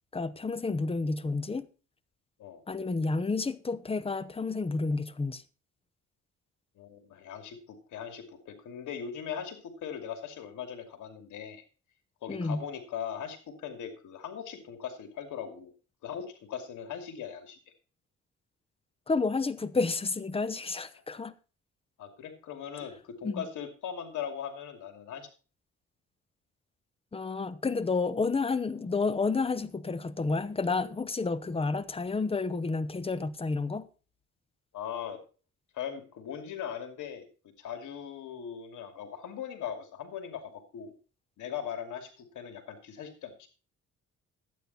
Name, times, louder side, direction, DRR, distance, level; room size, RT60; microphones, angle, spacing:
voice 1, 0.1-1.7 2.7-5.4 12.3-12.6 19.1-21.3 23.2-23.5 27.1-33.9, left 4 dB, 20° left, 0.9 m, -30 dB
voice 2, 6.8-11.6 12.2-15.7 16.0-17.6 22.0-25.3 34.7-35.2 35.7-37.3 37.6-40.9 41.4-43.5, left 8 dB, 80° left, 2.6 m, -39 dB
12.0 x 9.2 x 4.2 m
cardioid pair, 90°, 30 cm